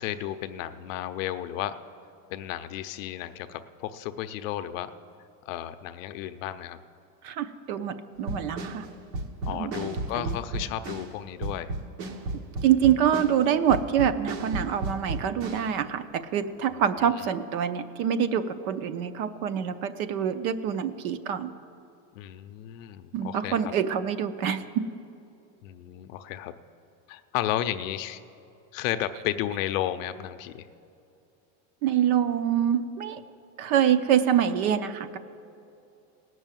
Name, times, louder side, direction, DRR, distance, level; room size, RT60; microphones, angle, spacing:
voice 1, 0.0-1.8 2.3-4.9 5.5-6.8 9.4-11.7 16.7-17.3 22.1-23.7 25.6-26.5 27.1-28.2 28.7-30.7, left 12 dB, 55° left, 10 dB, 0.6 m, -33 dB
voice 2, 7.2-8.9 9.5-9.9 10.1-10.4 12.6-21.6 23.1-24.9 31.8-33.2 33.6-35.2, right 9 dB, 60° right, 11 dB, 0.8 m, -25 dB
simple drum loop, 8.2-15.7, right 2 dB, 75° right, 1.5 m, -34 dB
17.5 x 6.3 x 9.0 m, 2.7 s
supercardioid pair, 175°, 49 cm